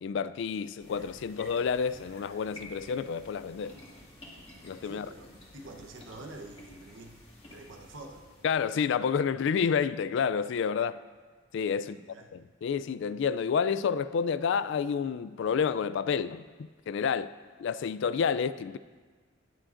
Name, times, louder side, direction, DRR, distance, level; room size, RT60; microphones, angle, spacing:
voice 1, 0.0-3.8 4.6-5.1 8.4-11.0 11.5-12.0 12.3-17.3 17.6-18.8, left 6 dB, 65° left, 0.3 m, -29 dB
sound 1, 0.8-8.9, left 1 dB, 30° left, 1.9 m, -52 dB
voice 2, 4.8-7.2 7.5-8.3 11.8-12.3, right 2 dB, 75° right, 1.0 m, -47 dB
18.0 x 7.5 x 2.5 m
head